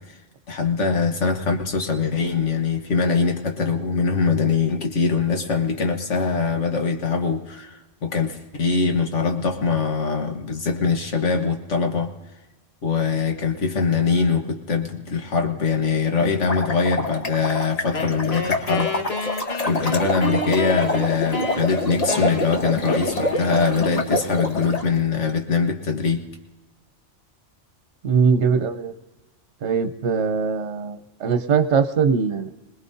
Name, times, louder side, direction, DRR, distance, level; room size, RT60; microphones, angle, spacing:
voice 1, 0.5-12.1 12.8-19.4 19.7-26.2, left 5 dB, 75° left, 3 dB, 1.7 m, -23 dB
sound 1, 16.3-24.8, left 2 dB, 35° left, 1.3 m, -26 dB
Wind instrument woodwind instrument, 17.9-24.2, left 1 dB, 55° left, 1.7 m, -30 dB
voice 2, 28.0-29.0 29.6-32.5, right 6 dB, 70° right, 8 dB, 1.2 m, -21 dB
26.5 x 20.0 x 2.7 m, 1.1 s
omnidirectional pair, 1.2 m